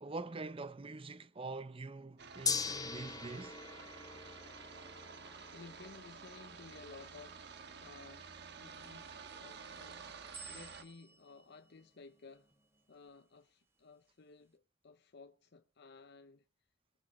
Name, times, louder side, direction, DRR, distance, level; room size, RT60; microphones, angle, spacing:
voice 1, 0.0-3.6, right 3 dB, 30° right, 0.7 m, -44 dB
sound 1, 2.2-10.8, right 5 dB, 60° right, 1.3 m, -51 dB
Gong, 2.4-12.7, left 5 dB, 20° left, 1.1 m, -45 dB
voice 2, 5.5-8.3 8.6-12.5 12.9-16.4, left 4 dB, 60° left, 0.7 m, -56 dB
sound 2, 8.7-13.2, right 5 dB, 15° right, 1.2 m, -57 dB
22.0 x 7.3 x 4.3 m
head